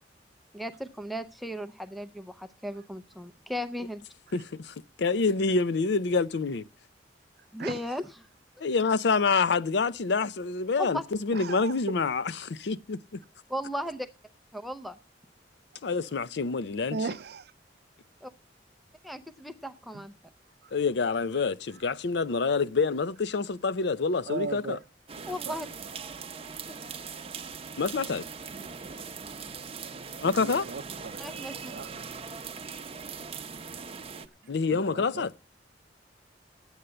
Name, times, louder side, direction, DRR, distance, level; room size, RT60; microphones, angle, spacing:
voice 1, 0.5-4.0 7.5-8.1 10.8-11.0 13.5-14.1 14.5-15.0 18.2-18.3 19.0-20.1 25.3-25.7 26.7-26.8 31.2-31.7, equal, ahead, 0.5 m, -36 dB
voice 2, 4.3-6.6 8.6-13.2 15.8-17.0 20.7-24.8 27.8-28.2 30.2-30.7 34.5-35.3, left 4 dB, 65° left, 0.5 m, -27 dB
voice 3, 11.3-11.9 16.9-17.5 19.9-20.0 20.6-20.7 24.3-24.8 25.2-25.6 30.2-31.4 31.7-32.2 34.7-35.3, right 4 dB, 60° right, 0.5 m, -37 dB
sound 1, 25.1-34.3, right 5 dB, 35° right, 0.8 m, -40 dB
9.9 x 8.1 x 7.7 m
head